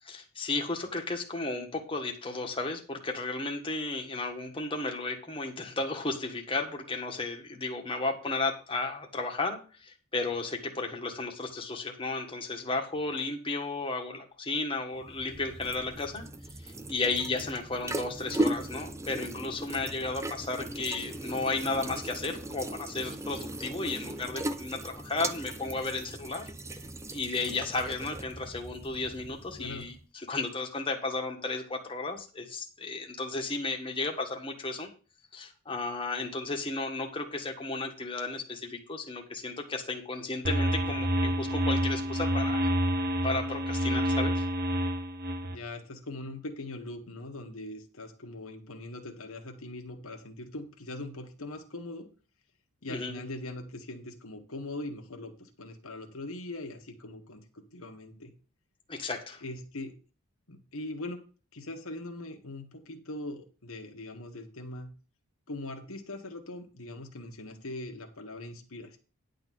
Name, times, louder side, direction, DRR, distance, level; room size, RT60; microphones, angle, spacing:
voice 1, 0.0-16.2 16.6-26.4 27.1-29.9 30.3-34.9 35.3-42.7 43.2-44.4 52.9-53.2 58.9-59.4, left 3 dB, 25° left, 2 dB, 1.5 m, -34 dB
sound 1, 15.0-30.0, right 1 dB, 15° right, 0.5 m, -38 dB
voice 2, 29.6-29.9 45.5-52.1 52.8-58.3 59.4-60.0 60.5-61.2 61.5-64.9 65.5-69.0, left 2 dB, 75° left, 3 dB, 1.5 m, -41 dB
sound 2, 40.4-45.6, equal, 45° right, 1.0 m, -28 dB
10.5 x 4.0 x 7.7 m, 0.36 s
head